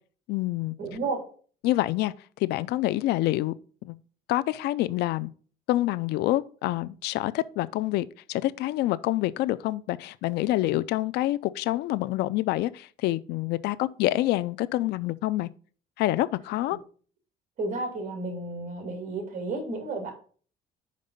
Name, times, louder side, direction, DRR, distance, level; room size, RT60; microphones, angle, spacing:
voice 1, 0.3-0.7 1.6-2.1 2.4-3.5 3.8-4.0 4.3-5.3 5.7-15.5 16.0-16.8, left 16 dB, 80° left, 0.4 m, -27 dB
voice 2, 0.8-1.2 17.6-20.1, right 3 dB, 50° right, 2.4 m, -32 dB
5.2 x 5.0 x 5.5 m
cardioid pair, 110°, 17 cm